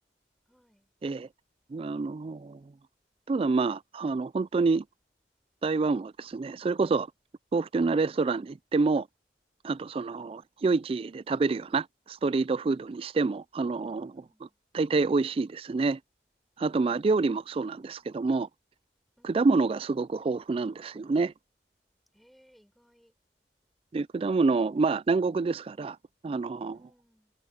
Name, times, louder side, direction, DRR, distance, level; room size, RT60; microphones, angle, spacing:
voice 1, 0.5-0.9 9.8-10.2 12.6-13.0 14.1-14.6 16.8-18.2 19.2-19.6 22.1-23.2 26.7-27.3, equal, ahead, 5.4 m, -65 dB
voice 2, 1.7-2.6 3.3-4.8 5.6-7.1 7.5-9.1 9.6-14.2 14.7-16.0 16.6-18.5 19.3-21.3 23.9-26.0 26.2-26.8, right 3 dB, 30° right, 0.3 m, -27 dB
head